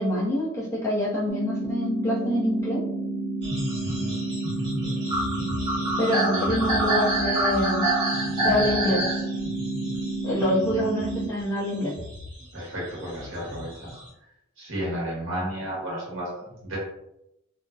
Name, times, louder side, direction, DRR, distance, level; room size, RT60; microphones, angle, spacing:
voice 1, 0.0-2.8 6.0-7.9 8.4-9.0 10.2-11.9, left 1 dB, 15° left, -5 dB, 0.5 m, -26 dB
sound 1, 1.3-11.3, right 2 dB, 45° right, 0.3 m, -30 dB
sound 2, 3.4-11.4 11.8-14.1, right 1 dB, 20° right, 1.0 m, -28 dB
voice 2, 3.8-4.1 12.5-14.0 14.6-16.8, equal, 65° right, -6 dB, 0.9 m, -33 dB
2.6 x 2.0 x 2.3 m, 0.83 s
head